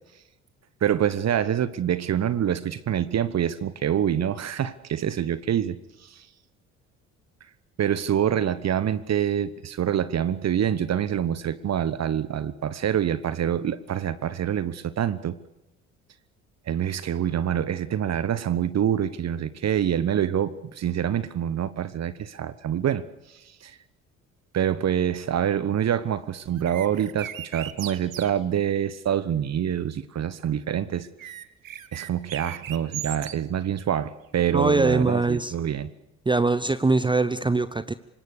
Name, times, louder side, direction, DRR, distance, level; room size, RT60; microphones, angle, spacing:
voice 1, 0.8-6.3 7.8-15.4 16.7-23.8 24.5-31.3 31.9-35.9, right 9 dB, 40° right, 16 dB, 1.2 m, -26 dB
sound 1, 26.6-28.3 31.2-33.3, right 10 dB, 90° right, 1.0 m, -37 dB
voice 2, 34.5-35.5 36.3-37.9, right 3 dB, 10° right, 14 dB, 0.9 m, -22 dB
25.5 x 21.5 x 6.8 m, 0.92 s
hypercardioid pair, 55°, 39 cm